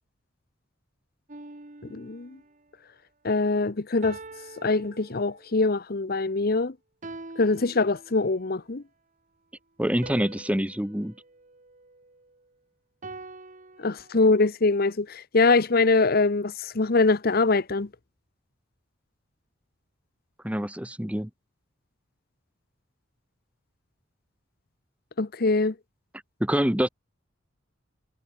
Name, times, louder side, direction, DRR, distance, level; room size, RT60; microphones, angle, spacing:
sound 1, 1.3-2.6 4.0-5.6 7.0-8.5 10.0-12.4 13.0-14.3, right 2 dB, 40° right, 1.5 m, -45 dB
voice 1, 1.9-2.4 3.2-4.2 4.6-6.7 7.4-8.8 13.8-17.9 25.2-25.7, left 3 dB, 50° left, 0.8 m, -23 dB
voice 2, 9.8-11.1 20.4-21.3 26.4-26.9, equal, 5° right, 1.5 m, -26 dB
head